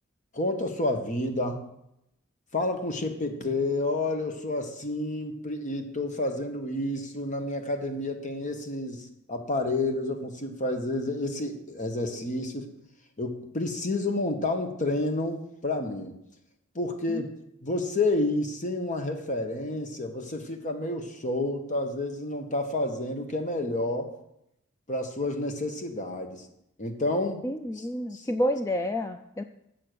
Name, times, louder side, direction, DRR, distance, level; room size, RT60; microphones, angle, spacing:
voice 1, 0.3-1.6 2.5-12.7 13.2-16.1 16.7-17.3 17.6-24.1 24.9-26.4 26.8-27.4 27.8-27.9 28.1-28.3, left 2 dB, 40° left, 5 dB, 1.2 m, -30 dB
voice 2, 27.4-29.4, equal, 15° left, 6 dB, 0.3 m, -29 dB
7.6 x 6.1 x 6.7 m, 0.80 s
head